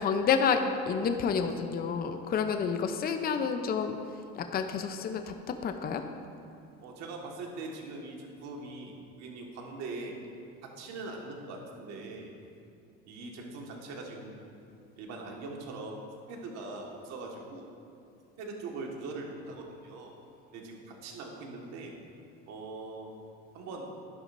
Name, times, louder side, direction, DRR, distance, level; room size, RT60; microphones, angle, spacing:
voice 1, 0.0-4.0 4.4-6.0, left 6 dB, 30° left, 7 dB, 0.6 m, -29 dB
voice 2, 6.8-10.2 10.6-12.4 13.0-14.4 15.0-16.0 16.3-17.7 18.4-20.2 20.5-21.9 22.5-23.1 23.5-23.9, right 3 dB, 65° right, 0 dB, 1.7 m, -41 dB
10.5 x 10.5 x 2.6 m, 2.5 s
supercardioid pair, 110°, 29 cm